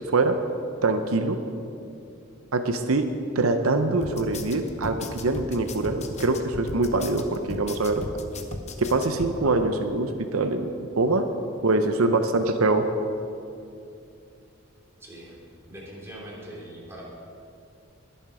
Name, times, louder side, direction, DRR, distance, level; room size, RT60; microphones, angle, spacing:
voice 1, 0.8-1.4 2.5-3.1 3.3-8.0 8.8-11.3 11.6-12.8, right 2 dB, 85° right, 7 dB, 0.8 m, -24 dB
sound 1, 4.0-9.3, left 2 dB, 30° left, 0.8 m, -37 dB
voice 2, 15.0-15.4 15.7-17.0, right 1 dB, 10° right, -5 dB, 2.8 m, -41 dB
21.0 x 7.2 x 4.9 m, 2.6 s
head